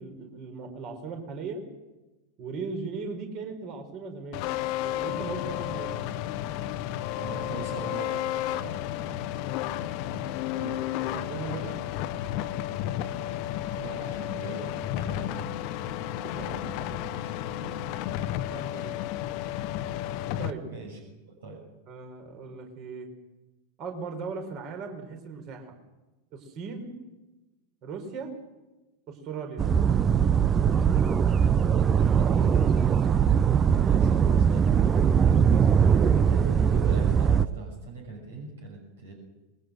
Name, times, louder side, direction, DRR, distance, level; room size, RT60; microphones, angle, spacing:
voice 1, 0.0-1.6 2.4-6.0 10.5-11.8 16.4-16.5 18.5-18.9 20.4-20.6 21.9-23.1 23.8-25.8 26.3-26.9 27.8-28.3 29.1-29.6 34.0-34.1 35.5-35.7, right 4 dB, 40° right, 5 dB, 5.0 m, -38 dB
sound 1, 4.3-20.5, left 12 dB, 45° left, 1.1 m, -32 dB
voice 2, 7.2-9.3 9.8-11.0 13.7-15.5 16.3-17.8 18.7-18.8 20.6-21.0 21.4-21.6 31.4-33.2 33.5-34.6 36.2-39.1, right 3 dB, 65° right, 1 dB, 6.5 m, -42 dB
sound 2, 29.6-37.4, right 7 dB, 25° right, 0.7 m, -21 dB
26.5 x 22.5 x 6.5 m, 1.1 s
figure-of-eight pair, 90°, 0 cm